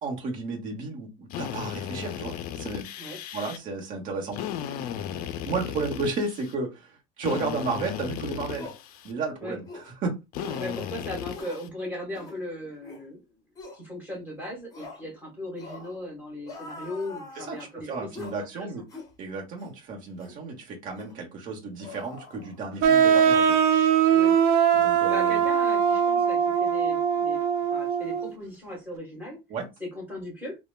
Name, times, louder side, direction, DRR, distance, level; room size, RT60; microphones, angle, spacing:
voice 1, 0.0-2.9 3.3-4.4 5.4-8.7 9.0-9.7 10.0-10.2 17.4-18.8 19.2-23.5 24.7-25.4 29.5-29.7, right 3 dB, 40° right, 0.9 m, -33 dB
Drill, 1.3-3.6 4.3-6.5 7.2-9.1 10.3-11.7, left 9 dB, 50° left, 0.4 m, -35 dB
sound 1, 8.5-8.8 9.6-9.9 10.3-10.8 11.3-11.6 12.1-12.4 12.8-13.0 13.6-13.8 14.7-15.0 15.6-15.9 16.4-17.7 18.1-18.4 18.9-19.1 19.6-19.7 20.2-20.4 21.0-21.1 21.8-22.9 23.1-23.3, left 3 dB, 20° left, 0.8 m, -43 dB
voice 2, 10.6-13.4 13.6-18.1 18.4-18.7 24.1-24.3 25.1-29.4 29.8-30.6, left 1 dB, 10° right, 1.4 m, -38 dB
sound 2, 22.8-28.3, right 8 dB, 60° right, 0.5 m, -21 dB
3.0 x 2.1 x 2.2 m
cardioid pair, 145°, 20 cm